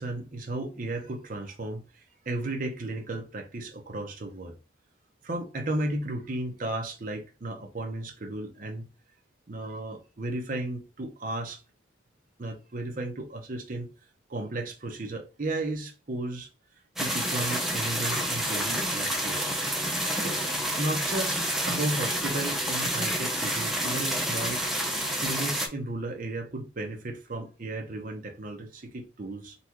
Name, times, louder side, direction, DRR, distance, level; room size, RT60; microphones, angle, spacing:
voice 1, 0.0-4.5 5.2-8.9 9.5-11.6 12.4-13.9 14.3-16.5 17.0-19.4 20.2-20.5 20.8-24.9 25.2-29.6, right 2 dB, 45° right, 0.7 m, -34 dB
sound 1, 17.0-25.7, right 1 dB, ahead, 0.4 m, -29 dB
3.9 x 2.3 x 2.9 m
head